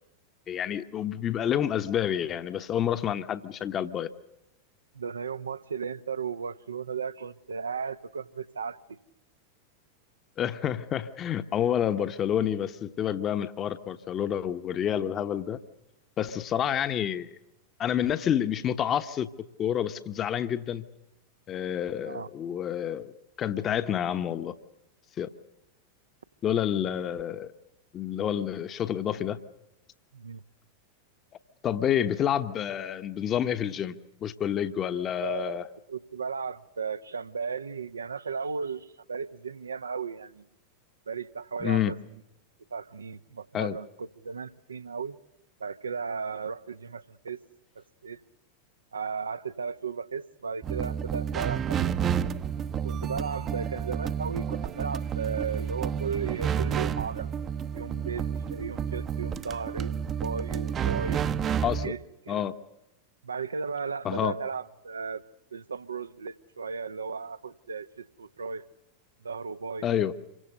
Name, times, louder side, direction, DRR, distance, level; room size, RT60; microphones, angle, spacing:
voice 1, 0.5-4.1 10.4-15.6 16.2-17.3 17.8-19.3 19.6-20.9 21.5-23.1 23.4-24.5 25.2-25.3 26.4-27.5 27.9-29.4 31.6-35.6 41.6-41.9 43.5-43.8 61.6-61.9 62.3-62.5 64.0-64.3 69.8-70.1, left 9 dB, 30° left, 1.1 m, -28 dB
voice 2, 4.9-8.8 22.0-22.3 30.1-30.4 35.2-35.6 35.9-40.4 41.1-42.0 42.7-45.2 45.6-47.4 47.7-48.2 48.9-52.0 52.8-57.3 57.7-61.2 61.6-62.0 62.2-62.4 63.2-65.2 65.5-68.6 69.2-69.9, right 5 dB, 75° right, 1.0 m, -35 dB
sound 1, 50.6-61.9, right 8 dB, 25° right, 0.9 m, -30 dB
27.5 x 24.0 x 6.6 m
figure-of-eight pair, 90°, 0 cm